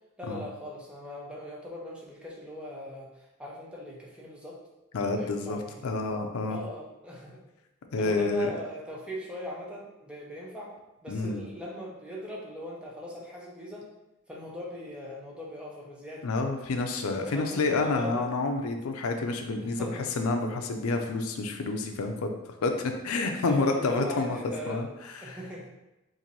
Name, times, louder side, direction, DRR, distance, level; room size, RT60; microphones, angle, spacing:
voice 1, 0.2-4.6 4.9-5.8 6.5-7.4 8.0-10.7 11.0-13.9 14.3-16.3 17.2-18.3 19.6-20.1 23.5-24.8 25.2-25.7, left 1 dB, 5° right, -4 dB, 0.6 m, -40 dB
voice 2, 4.9-6.6 7.9-8.5 11.1-11.4 16.2-19.9 20.2-22.3 22.6-24.4 24.7-24.9 25.3-25.4, left 3 dB, 85° left, 4 dB, 0.4 m, -28 dB
2.9 x 2.6 x 3.9 m, 0.97 s
head